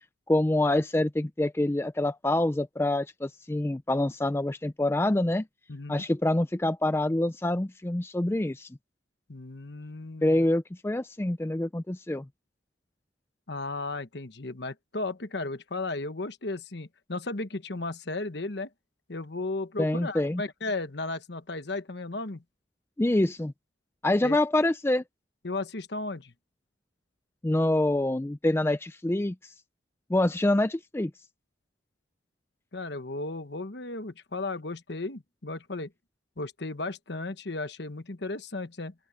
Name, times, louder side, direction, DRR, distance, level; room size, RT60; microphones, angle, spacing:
voice 1, 0.3-5.5 5.9-8.7 10.2-12.3 19.8-20.4 23.0-23.5 24.0-25.0 27.4-29.5 30.1-31.1, left 1 dB, 10° left, 0.4 m, -26 dB
voice 2, 5.7-6.0 9.3-10.5 13.5-18.7 19.1-22.4 24.2-24.4 25.4-26.3 32.7-35.9 36.4-38.9, left 2 dB, 60° left, 1.2 m, -35 dB
open air
head